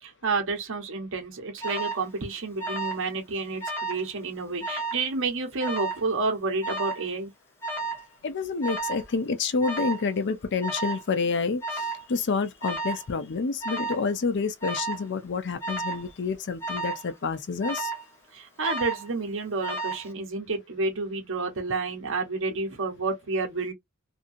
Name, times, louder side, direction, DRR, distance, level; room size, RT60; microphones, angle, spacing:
voice 1, 0.0-7.3 18.3-23.7, right 3 dB, 65° right, 1.0 m, -30 dB
Alarm, 1.6-2.0 2.6-3.1 3.4-4.0 4.6-5.0 5.6-6.1 6.6-7.1 7.6-8.1 8.6-9.0 9.6-10.0 10.6-11.0 11.6-12.1 12.6-13.1 13.6-14.0 14.6-15.0 15.6-16.1 16.6-17.0 17.6-18.1 18.6-19.1 19.6-20.1, right 3 dB, 10° left, 0.8 m, -32 dB
voice 2, 8.2-17.9, left 4 dB, 55° left, 0.5 m, -28 dB
2.7 x 2.6 x 2.5 m
head